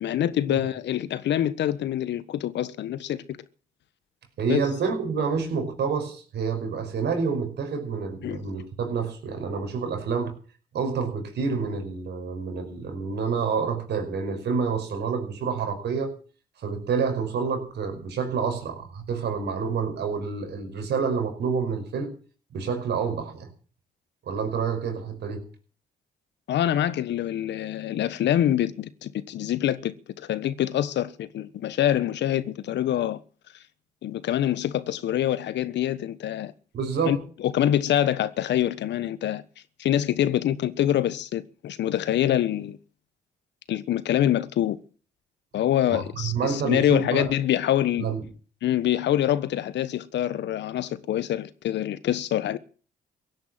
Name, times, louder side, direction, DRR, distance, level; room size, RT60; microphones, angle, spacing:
voice 1, 0.0-3.4 4.5-4.6 8.2-8.4 26.5-33.2 34.0-36.5 37.1-37.2 37.4-39.4 39.8-42.8 43.7-44.8 45.5-48.0 48.6-52.6, left 11 dB, 70° left, 1.3 m, -25 dB
voice 2, 4.4-10.4 10.7-16.1 16.6-22.2 22.5-23.5 24.2-25.4 36.7-37.2 45.9-47.3 48.0-48.2, right 5 dB, 65° right, 5.4 m, -28 dB
16.5 x 10.5 x 7.6 m
supercardioid pair, 60°, 19 cm